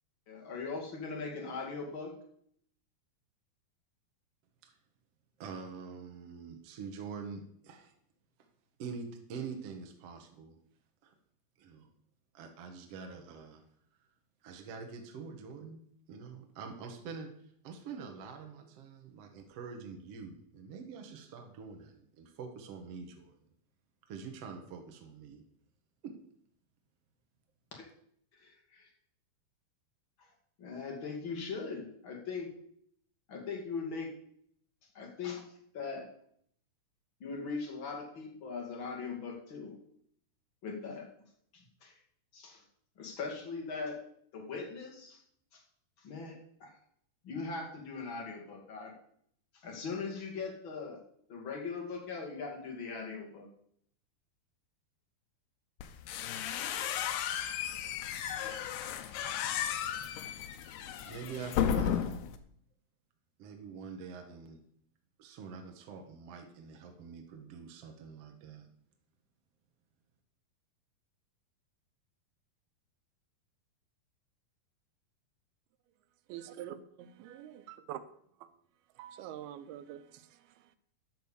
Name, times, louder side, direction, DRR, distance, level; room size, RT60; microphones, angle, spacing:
voice 1, 0.3-2.1 27.8-27.9 28.3-28.9 30.6-32.5 33.3-34.1 34.9-35.4 35.7-36.0 37.2-39.8 40.6-41.0 41.5-41.9 42.3-42.6 43.0-44.0 44.3-45.2 45.5-45.6 46.0-46.7 47.2-48.9 49.6-51.0 51.3-53.5, left 4 dB, 35° left, 2.5 m, -40 dB
voice 2, 5.4-7.9 8.8-10.6 11.0-11.1 11.6-11.9 12.3-13.6 14.4-15.8 16.1-17.3 17.6-23.5 24.1-25.4 26.0-26.2 61.0-62.2 63.4-64.6 65.2-68.7, right 5 dB, 65° right, 1.6 m, -45 dB
sound 1, 55.8-62.4, left 9 dB, 85° left, 2.8 m, -34 dB
voice 3, 76.3-78.1 78.4-78.5 79.0-80.8, right 11 dB, 80° right, 2.7 m, -46 dB
10.5 x 6.1 x 7.1 m
omnidirectional pair, 4.5 m